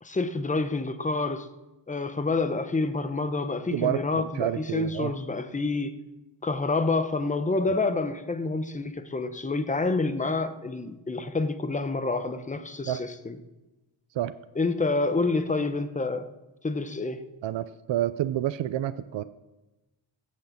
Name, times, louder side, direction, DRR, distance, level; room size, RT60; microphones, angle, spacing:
voice 1, 0.0-1.5 1.9-5.9 6.4-13.4 14.6-16.3 16.6-17.2, left 3 dB, 15° left, 10 dB, 0.9 m, -28 dB
voice 2, 3.7-5.1 12.9-13.0 14.1-14.3 17.4-19.2, right 12 dB, 70° right, 13 dB, 0.6 m, -29 dB
16.0 x 6.5 x 7.2 m, 1.1 s
wide cardioid pair, 110°, 46 cm